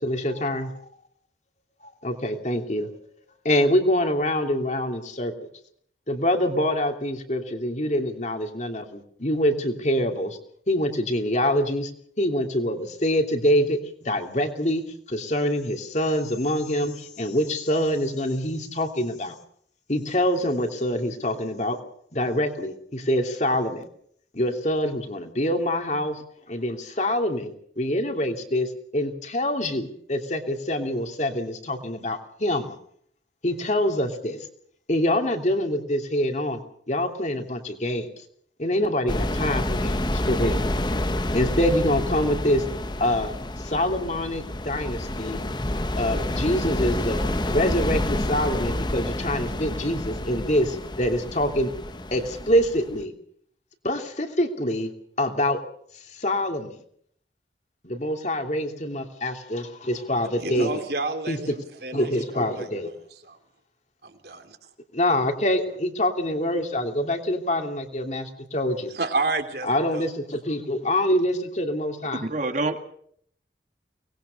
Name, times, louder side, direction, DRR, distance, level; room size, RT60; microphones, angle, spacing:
voice 1, 0.0-0.7 1.8-2.9 3.4-5.5 6.1-10.4 10.7-11.9 12.2-14.8 15.1-19.3 19.9-21.8 22.1-23.8 24.3-32.7 33.4-34.4 34.9-36.6 36.9-38.1 38.6-40.6 41.3-42.6 43.0-45.4 45.7-51.7 52.1-53.1 53.8-54.9 55.2-55.6 56.1-56.7 57.8-60.7 61.3-61.4 61.9-62.9 64.9-69.0 69.6-72.3, left 1 dB, 40° left, 4 dB, 2.9 m, -25 dB
sound 1, 39.1-53.0, left 1 dB, 25° left, 1.1 m, -28 dB
voice 2, 60.4-62.7 63.2-63.4 64.0-64.6 68.9-70.1, right 3 dB, 60° right, 6 dB, 3.3 m, -30 dB
voice 3, 72.1-72.8, right 2 dB, 45° right, 6 dB, 1.9 m, -26 dB
24.0 x 20.0 x 6.5 m, 0.65 s
head